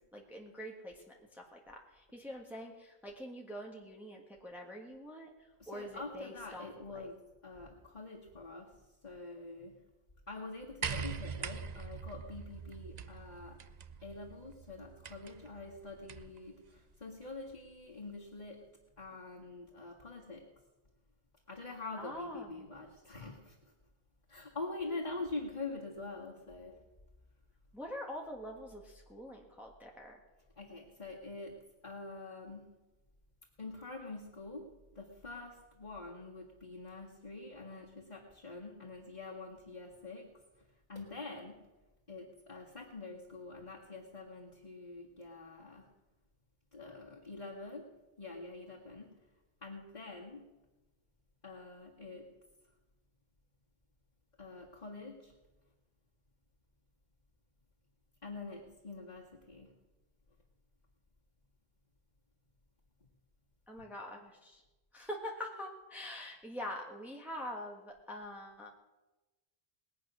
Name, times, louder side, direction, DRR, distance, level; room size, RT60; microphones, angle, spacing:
voice 1, 0.1-7.1 22.0-22.7 27.7-30.2 63.7-64.6 64.9-68.7, left 1 dB, ahead, -1 dB, 1.6 m, -45 dB
voice 2, 5.6-7.2 7.4-8.7 9.0-9.8 10.3-13.6 14.0-18.7 19.0-20.5 21.5-23.7 24.3-26.8 30.6-32.7 33.6-34.7 34.9-40.3 40.9-41.7 42.1-45.9 46.7-47.9 48.2-49.2 49.6-50.4 51.4-52.3 54.4-55.3 58.2-59.7, left 3 dB, 40° left, -5 dB, 2.1 m, -45 dB
sound 1, 10.8-16.4 17.5-17.6, right 6 dB, 45° right, 0.7 m, -43 dB
20.5 x 8.5 x 6.2 m, 1.1 s
omnidirectional pair, 1.1 m